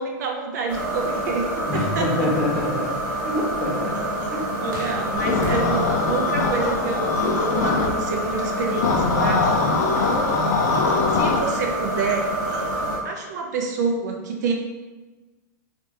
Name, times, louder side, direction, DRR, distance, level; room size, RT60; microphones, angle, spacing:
voice 1, 0.0-2.3 4.6-9.5 11.1-12.3 13.0-14.5, right 4 dB, 60° right, 1 dB, 0.6 m, -27 dB
airplane-interior soft with cracklin, 0.7-13.0, right 1 dB, 30° right, 1.2 m, -27 dB
voice 2, 1.7-4.0 4.3-4.5, left 1 dB, 5° left, -3 dB, 0.4 m, -26 dB
sound 1, 4.7-11.1, right 1 dB, 80° right, 1.2 m, -44 dB
sound 2, 5.1-7.9 8.8-11.4, left 4 dB, 60° left, 0.4 m, -22 dB
3.4 x 2.4 x 2.8 m, 1.2 s
supercardioid pair, 165°, 10 cm